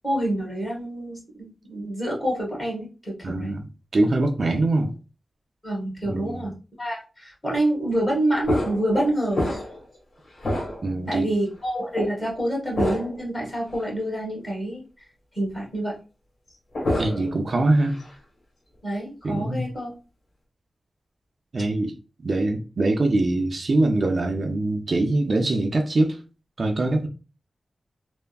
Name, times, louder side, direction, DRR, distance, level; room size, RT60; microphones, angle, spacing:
voice 1, 0.0-3.5 5.6-9.6 11.1-14.8 15.3-16.0 18.8-19.9, right 1 dB, 20° left, 1.4 m, -27 dB
voice 2, 3.2-3.7 3.9-4.9 6.0-6.5 10.8-11.3 17.0-18.0 19.2-19.7 21.5-21.9 22.2-26.2 26.6-27.1, right 2 dB, 50° right, 0.4 m, -23 dB
sound 1, 8.4-10.0 10.4-11.1 11.9-12.1 12.7-13.2 13.7-13.8 16.5-17.4 17.8-18.1, left 1 dB, 65° left, 1.3 m, -27 dB
3.3 x 2.1 x 2.2 m
wide cardioid pair, 120°, 0 cm